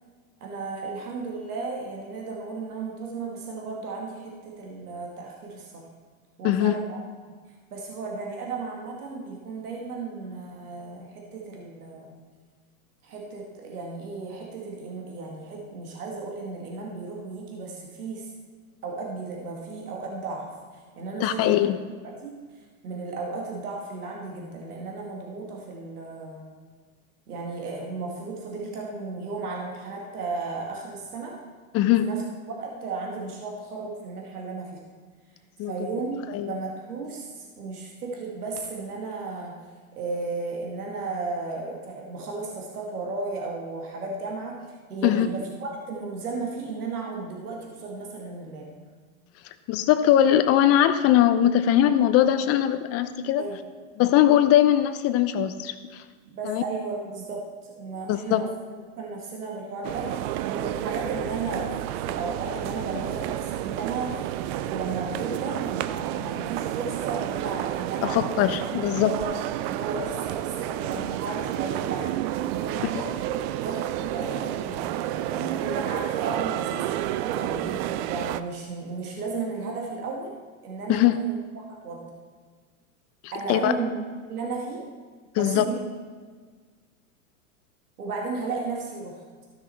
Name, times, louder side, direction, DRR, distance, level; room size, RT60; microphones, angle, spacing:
voice 1, 0.4-5.9 6.4-7.3 7.7-12.2 13.0-18.3 18.8-21.7 22.0-26.4 27.3-31.4 32.0-32.2 32.6-34.8 35.7-39.6 40.0-48.8 53.4-53.6 56.2-58.5 59.0-60.2 60.5-64.3 64.6-68.5 69.0-69.3 69.6-72.1 72.4-73.1 73.6-77.0 77.3-80.3 80.6-82.2 83.3-84.0 84.2-84.8 85.4-85.8 88.0-89.5, right 3 dB, 85° right, -1 dB, 2.2 m, -34 dB
voice 2, 6.4-6.7 21.2-21.8 31.7-32.1 35.6-35.7 36.3-36.5 45.0-45.3 49.7-53.4 54.0-56.0 56.5-56.6 58.1-58.4 68.0-69.2 80.9-81.1 83.5-83.7 85.4-85.6, left 11 dB, 35° left, 10 dB, 0.6 m, -21 dB
sound 1, 59.8-78.4, right 13 dB, 45° right, 0.5 m, -30 dB
14.0 x 6.4 x 4.4 m, 1.5 s
hypercardioid pair, 115°, 44 cm